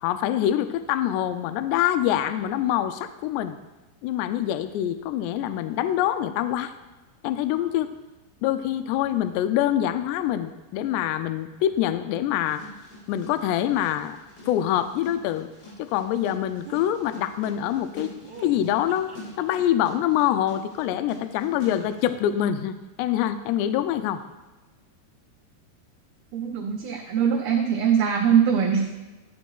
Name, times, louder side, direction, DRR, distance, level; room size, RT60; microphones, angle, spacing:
voice 1, 0.0-3.6 4.0-6.7 7.2-7.9 8.4-12.6 13.1-14.2 14.5-15.5 15.8-18.1 18.4-19.1 19.4-24.2, left 11 dB, 85° left, 10 dB, 2.5 m, -25 dB
sound 1, 12.4-22.1, left 1 dB, 70° left, 5.8 m, -45 dB
sound 2, 16.6-16.9 18.2-19.5 20.1-21.1 21.7-22.2, right 4 dB, 35° right, 2.6 m, -45 dB
voice 2, 26.3-28.9, right 7 dB, 80° right, 0 dB, 2.1 m, -22 dB
13.5 x 10.5 x 2.4 m, 1.2 s
omnidirectional pair, 5.3 m